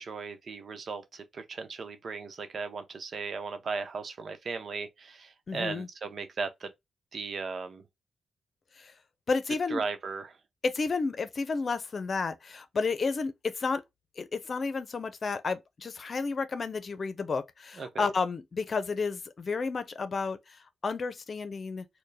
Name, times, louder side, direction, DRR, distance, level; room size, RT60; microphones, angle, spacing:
voice 1, 0.0-6.7 7.1-7.8 9.7-10.4 17.8-18.1, right 4 dB, 60° right, 0.9 m, -37 dB
voice 2, 5.5-5.9 8.8-8.9 9.3-9.8 10.6-13.8 14.2-20.6 20.8-21.8, left 4 dB, 55° left, 0.7 m, -31 dB
4.5 x 2.2 x 3.3 m
cardioid pair, 55°, 0 cm